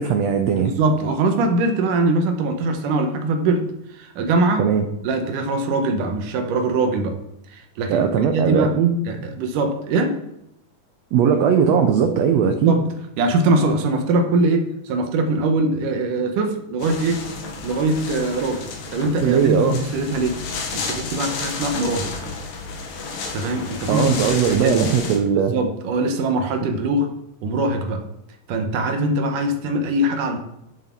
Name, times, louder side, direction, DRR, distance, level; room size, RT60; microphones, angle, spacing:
voice 1, 0.0-0.7 4.6-4.8 7.9-8.9 11.1-12.8 19.2-19.8 23.9-25.5, right 7 dB, 90° right, 6 dB, 1.4 m, -19 dB
voice 2, 0.6-4.7 5.0-7.2 7.5-8.8 9.1-10.1 12.6-12.9 13.2-17.2 17.6-20.4 20.7-22.2 23.3-24.9 25.4-27.1 27.4-28.0 28.5-30.4, right 2 dB, 70° right, 6 dB, 2.4 m, -22 dB
sound 1, 16.8-25.2, left 4 dB, 70° left, 3.1 m, -31 dB
10.5 x 6.9 x 4.4 m, 0.81 s
omnidirectional pair, 4.1 m